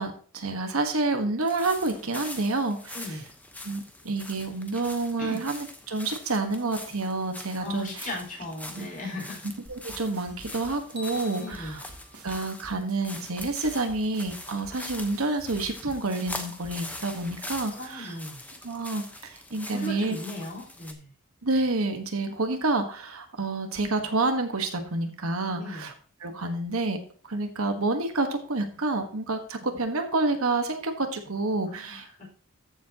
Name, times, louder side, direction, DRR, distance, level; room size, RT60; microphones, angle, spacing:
voice 1, 0.0-3.2 3.6-8.1 8.7-8.9 9.7-11.8 12.2-18.2 18.6-20.2 21.4-25.9 26.2-27.0 27.2-32.1, right 2 dB, 65° right, 6 dB, 1.4 m, -29 dB
sound 1, 1.5-20.9, left 2 dB, 5° left, 1.0 m, -43 dB
voice 2, 2.9-3.2 5.2-5.4 7.6-9.4 11.4-11.8 17.7-18.4 19.7-21.1 25.6-25.9 31.7-32.3, left 2 dB, 40° left, -2 dB, 5.0 m, -37 dB
sound 2, 9.6-17.6, right 1 dB, 85° right, 2.8 m, -48 dB
sound 3, 11.0-13.2, left 3 dB, 30° right, 2.3 m, -47 dB
14.0 x 7.3 x 2.9 m, 0.42 s
head